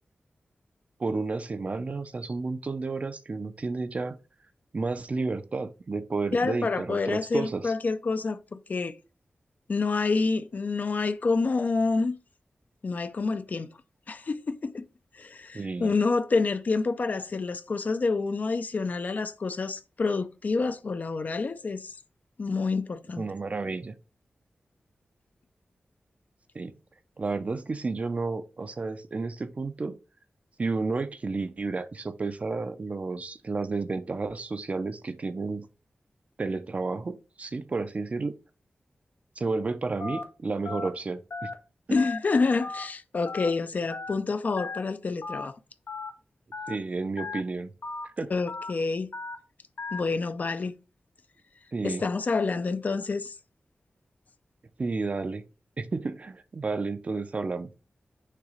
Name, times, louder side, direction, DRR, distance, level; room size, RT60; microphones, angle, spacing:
voice 1, 1.0-4.2 4.7-7.7 15.5-15.9 23.2-23.9 26.5-26.7 27.2-30.0 30.6-35.7 36.4-38.3 39.4-41.5 41.9-42.0 46.7-47.7 48.2-48.3 51.7-52.0 54.8-55.4 55.8-57.7, right 3 dB, 40° right, 0.5 m, -31 dB
voice 2, 6.3-9.0 9.7-12.2 12.8-13.7 14.1-14.9 15.1-22.0 22.4-23.3 41.9-45.6 48.3-49.1 49.9-50.7 51.8-53.3, left 4 dB, 50° left, 0.5 m, -28 dB
Telephone, 40.0-40.2 40.7-40.9 41.3-41.5 42.0-42.2 42.6-42.8 43.3-43.5 43.9-44.1 44.6-44.8 45.2-45.4 45.9-46.1 46.5-46.8 47.2-47.4 47.8-48.1 48.5-48.7 49.1-49.4 49.8-50.0, left 4 dB, 85° left, 0.9 m, -36 dB
6.6 x 3.0 x 4.9 m
wide cardioid pair, 115°, 4 cm